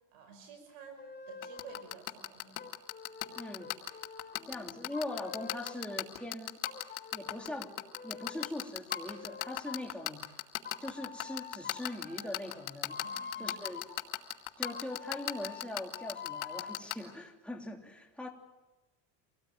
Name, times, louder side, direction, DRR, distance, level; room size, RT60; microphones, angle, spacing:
voice 1, 0.1-1.0 1.3-2.6 13.0-13.5, right 6 dB, 70° right, 7 dB, 5.7 m, -52 dB
sound 1, 1.0-2.0 2.6-6.0 6.6-8.5 8.9-10.0 10.6-14.0 14.6-16.8, left 6 dB, 20° left, 3.9 m, -46 dB
sound 2, 1.4-16.9, left 17 dB, 80° left, 2.3 m, -34 dB
voice 2, 3.3-3.7 4.4-6.7 7.1-7.8 8.0-10.2 10.8-13.0 13.4-13.9 14.6-18.3, left 1 dB, ahead, 1 dB, 3.1 m, -41 dB
25.5 x 18.0 x 9.1 m, 1.1 s
supercardioid pair, 115°, 50 cm